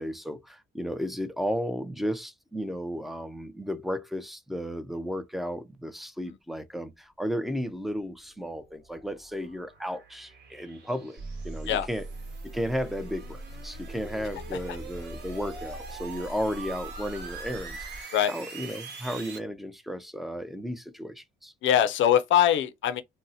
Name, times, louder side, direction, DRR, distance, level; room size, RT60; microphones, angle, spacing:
voice 1, 0.0-12.1 12.4-21.5, equal, ahead, 0.4 m, -34 dB
sound 1, 8.2-19.4, right 5 dB, 60° right, 1.2 m, -44 dB
sound 2, 11.2-18.0, right 1 dB, 45° right, 0.9 m, -42 dB
voice 2, 21.6-23.0, left 10 dB, 75° left, 0.5 m, -22 dB
2.6 x 2.1 x 3.9 m
cardioid pair, 90°, 20 cm